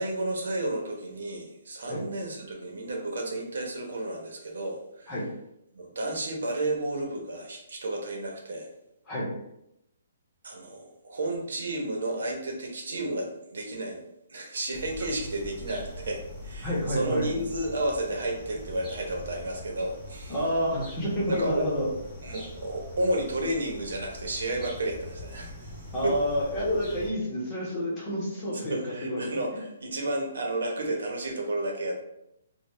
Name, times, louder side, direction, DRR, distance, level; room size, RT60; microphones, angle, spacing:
voice 1, 0.0-5.1 5.7-8.7 10.4-14.0 14.3-20.4 21.3-21.7 22.2-25.7 26.0-26.1 28.5-32.0, right 1 dB, 75° right, 1 dB, 0.9 m, -32 dB
sound 1, 14.7-27.1, equal, ahead, 1.1 m, -43 dB
voice 2, 16.6-17.3 20.3-21.9 25.9-29.3 29.5-29.6, equal, 20° left, -6 dB, 1.2 m, -29 dB
4.0 x 2.3 x 3.2 m, 0.82 s
hypercardioid pair, 165°, 0 cm